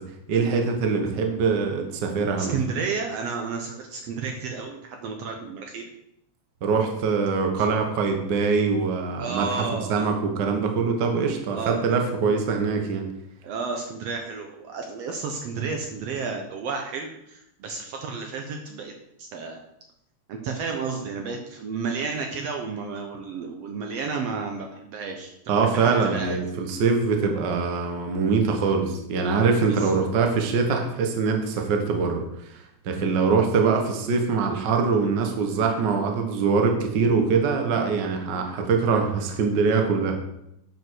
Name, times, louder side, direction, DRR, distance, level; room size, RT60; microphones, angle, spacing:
voice 1, 0.3-2.5 6.6-13.1 25.5-32.3 32.8-40.2, right 5 dB, 50° right, 3 dB, 1.6 m, -23 dB
voice 2, 2.4-5.9 9.2-10.1 11.5-11.8 12.3-12.4 13.4-18.9 19.2-19.6 20.3-26.4 29.7-30.0, right 5 dB, 65° right, 3 dB, 1.8 m, -32 dB
9.2 x 5.3 x 6.2 m, 0.80 s
omnidirectional pair, 3.3 m